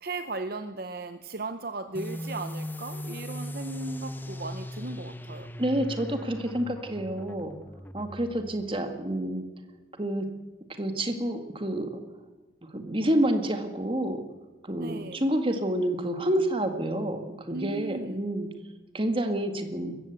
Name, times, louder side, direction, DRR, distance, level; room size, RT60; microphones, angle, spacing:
voice 1, 0.0-5.5 14.8-15.2 17.5-18.2, right 3 dB, 50° right, 9 dB, 0.8 m, -36 dB
sound 1, 1.9-9.2, left 1 dB, 10° left, 0.7 m, -39 dB
voice 2, 5.6-7.5 7.9-9.4 10.0-10.3 10.8-12.0 12.7-14.2 14.6-18.5 18.9-20.0, right 1 dB, 25° right, 6 dB, 1.9 m, -28 dB
21.0 x 15.0 x 8.1 m, 1.1 s
head